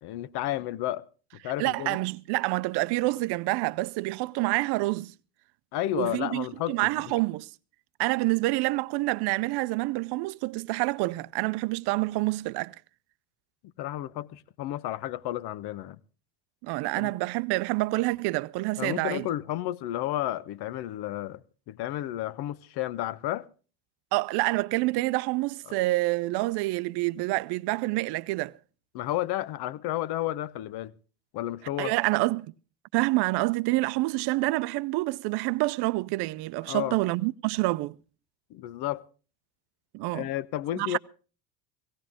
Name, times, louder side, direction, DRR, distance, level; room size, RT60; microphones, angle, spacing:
voice 1, 0.0-1.0 1.4-2.0 5.7-6.8 13.8-16.0 17.0-17.1 18.8-23.5 25.7-25.8 28.9-30.9 31.3-31.9 36.7-37.0 38.5-39.0 40.1-41.0, left 14 dB, 50° left, 0.9 m, -32 dB
voice 2, 1.6-5.1 5.9-7.5 8.0-12.7 16.6-19.3 24.1-28.5 31.8-32.5 32.9-38.0 39.9-40.3 40.8-41.0, right 21 dB, 50° right, 0.7 m, -27 dB
17.0 x 16.5 x 3.6 m
hypercardioid pair, 85°, 49 cm